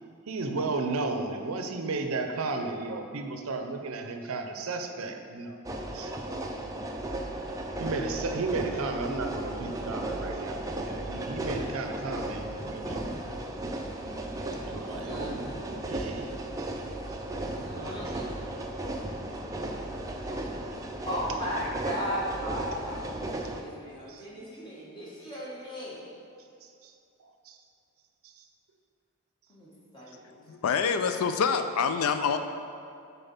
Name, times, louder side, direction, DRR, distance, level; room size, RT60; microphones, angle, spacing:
voice 1, 0.3-5.6 5.9-6.4 7.8-13.1 14.7-16.7 17.7-18.1 24.1-24.3 26.6-26.9 27.2-27.6 28.2-28.4, right 3 dB, 70° right, 6 dB, 0.6 m, -34 dB
sound 1, 5.6-23.6, right 1 dB, 15° right, 0.4 m, -35 dB
voice 2, 14.9-15.6 17.5-18.6 21.1-26.0 29.5-30.2, equal, 20° left, -7 dB, 1.7 m, -36 dB
voice 3, 30.5-32.4, left 6 dB, 75° left, 8 dB, 0.4 m, -26 dB
6.9 x 4.5 x 5.6 m, 2.5 s
head